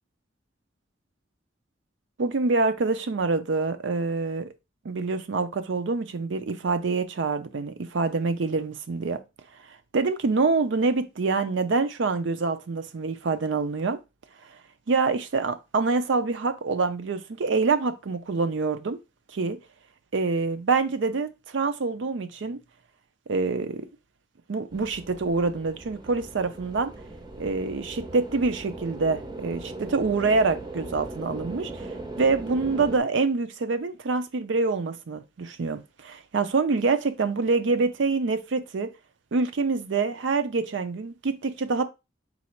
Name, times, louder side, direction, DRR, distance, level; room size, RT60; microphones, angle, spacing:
voice 1, 2.2-4.5 4.8-9.2 9.9-14.0 14.9-19.0 19.3-19.6 20.1-22.6 23.3-23.9 24.5-26.9 27.4-38.9 39.3-41.8, right 4 dB, 65° right, 0.5 m, -26 dB
sound 1, 24.7-33.0, right 2 dB, 20° right, 0.7 m, -39 dB
4.1 x 2.4 x 4.3 m
head